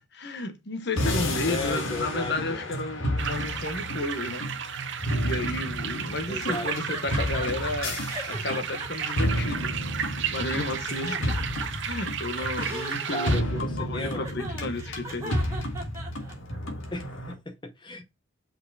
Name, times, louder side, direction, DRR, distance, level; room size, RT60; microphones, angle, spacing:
voice 1, 0.1-4.5 5.2-9.7 10.0-11.5 11.8-15.4, left 2 dB, 55° left, 1.1 m, -33 dB
sound 1, 1.0-17.3, equal, 70° left, 1.7 m, -31 dB
voice 2, 1.5-2.6 6.3-6.7 13.1-14.3 16.9-18.0, left 2 dB, 20° left, 0.6 m, -35 dB
sound 2, 3.2-13.4, right 8 dB, 60° right, 0.7 m, -34 dB
sound 3, 6.5-7.7 8.1-10.2 10.6-11.9 12.3-16.6, right 2 dB, 15° right, 2.2 m, -38 dB
5.7 x 4.6 x 4.0 m
head